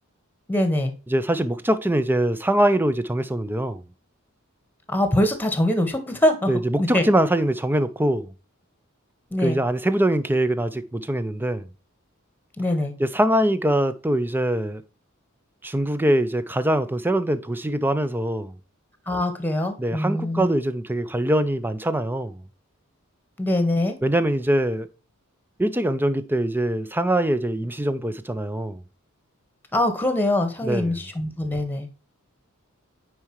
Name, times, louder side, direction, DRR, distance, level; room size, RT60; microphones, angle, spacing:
voice 1, 0.5-0.9 4.9-7.1 9.3-9.6 12.6-12.9 19.1-20.5 23.4-24.0 29.7-31.9, left 1 dB, 10° left, 1.4 m, -23 dB
voice 2, 1.1-3.8 6.5-8.3 9.4-11.6 13.0-14.8 15.6-18.5 19.8-22.4 24.0-24.9 25.6-28.8 30.6-31.0, right 1 dB, 10° right, 0.5 m, -23 dB
9.2 x 4.7 x 3.1 m
head